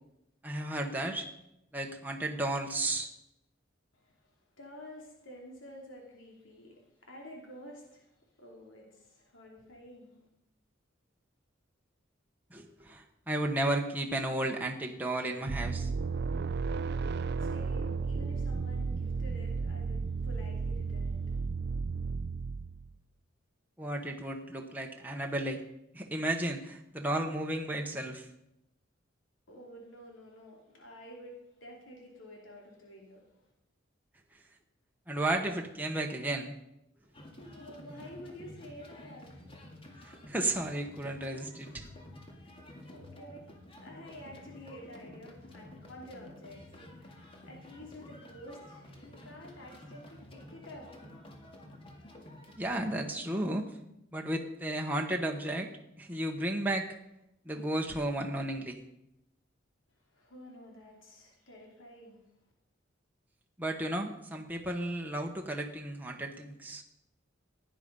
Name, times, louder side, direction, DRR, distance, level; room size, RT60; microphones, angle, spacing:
voice 1, 0.4-1.3 1.7-3.1 12.5-15.9 23.8-25.6 25.9-28.3 35.1-36.5 40.3-41.9 52.6-53.7 54.1-55.7 56.0-56.9 57.5-58.8 63.6-66.8, right 1 dB, 10° right, 1 dB, 1.1 m, -33 dB
voice 2, 3.9-10.2 17.2-21.3 29.5-33.4 37.0-39.3 42.4-42.6 42.9-51.2 60.0-62.2, equal, 85° left, 0 dB, 3.0 m, -50 dB
sound 1, 15.5-22.9, right 4 dB, 60° right, 0.5 m, -33 dB
sound 2, 37.1-53.0, left 1 dB, 30° left, 2.1 m, -51 dB
16.5 x 10.0 x 5.3 m, 0.83 s
head